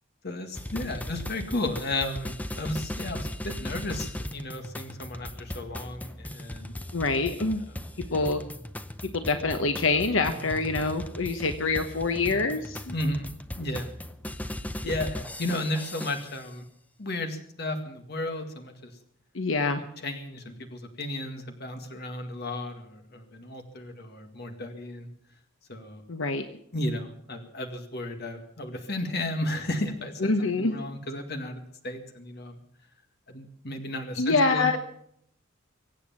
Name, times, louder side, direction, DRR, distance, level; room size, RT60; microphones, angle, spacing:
voice 1, 0.2-6.7 12.9-13.3 13.6-13.9 14.8-16.6 17.0-18.9 19.7-25.1 25.7-26.0 26.7-32.6 33.3-34.8, left 1 dB, 50° left, 5 dB, 2.1 m, -34 dB
sound 1, 0.5-16.5, left 1 dB, 10° left, 0.7 m, -38 dB
voice 2, 6.9-7.6 8.1-8.4 9.1-12.9 19.3-19.8 26.1-26.4 30.2-30.8 34.1-34.8, left 3 dB, 70° left, 7 dB, 1.1 m, -25 dB
24.0 x 8.4 x 7.3 m, 0.70 s
head